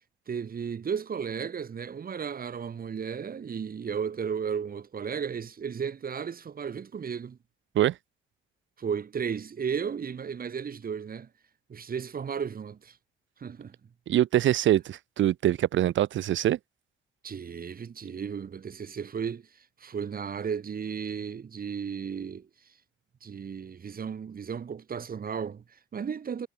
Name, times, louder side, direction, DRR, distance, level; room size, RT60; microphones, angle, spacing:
voice 1, 0.3-7.4 8.8-11.3 11.7-13.0 13.4-13.8 17.2-22.5 23.2-26.5, right 7 dB, 45° right, 5.9 m, -34 dB
voice 2, 14.1-16.6, right 12 dB, 75° right, 1.8 m, -24 dB
cardioid pair, 90°, 20 cm